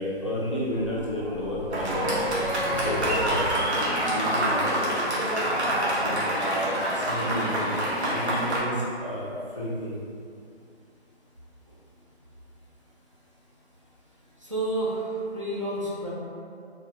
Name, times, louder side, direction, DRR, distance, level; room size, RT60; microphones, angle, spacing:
voice 1, 0.0-2.2 2.8-4.9 5.6-6.7 6.9-9.3 9.6-10.0, equal, 30° left, -8 dB, 0.5 m, -32 dB
sound 1, 0.7-4.1, right 1 dB, 60° right, 1.0 m, -38 dB
Fireworks, 1.7-8.6, right 1 dB, 80° right, 1.4 m, -26 dB
voice 2, 14.4-16.1, right 1 dB, 30° right, -7 dB, 0.5 m, -30 dB
4.5 x 2.7 x 2.9 m, 2.4 s
figure-of-eight pair, 160°, 33 cm